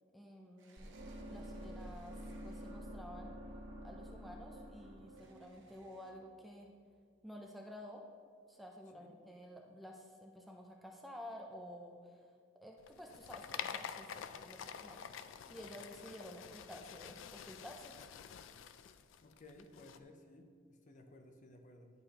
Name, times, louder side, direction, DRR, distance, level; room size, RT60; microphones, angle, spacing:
voice 1, 0.1-1.0 1.2-2.1 2.4-3.4 3.8-6.7 7.2-8.1 8.5-12.2 12.6-17.9, equal, ahead, 0 dB, 0.4 m, -52 dB
sound 1, 0.6-3.0 5.1-6.1, right 3 dB, 70° right, 0.9 m, -66 dB
sound 2, 0.8-6.8, equal, 90° right, 1.3 m, -49 dB
sound 3, 12.8-20.0, left 8 dB, 75° left, 0.3 m, -48 dB
voice 2, 19.2-21.9, left 1 dB, 40° left, 5 dB, 0.6 m, -58 dB
10.5 x 4.9 x 2.9 m, 2.1 s
head